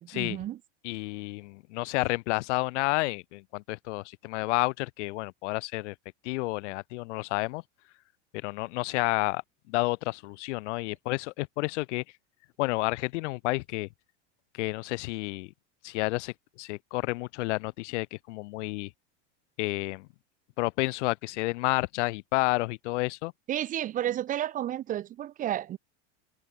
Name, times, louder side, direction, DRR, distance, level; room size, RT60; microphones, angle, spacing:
voice 1, 0.0-0.6 23.5-25.8, right 12 dB, 25° right, 0.4 m, -31 dB
voice 2, 0.8-5.9 6.2-7.6 8.4-9.4 9.7-12.0 12.6-13.9 14.6-15.5 15.8-18.9 19.6-20.1 20.6-23.3, left 23 dB, 80° left, 0.5 m, -30 dB
supercardioid pair, 130°, 35 cm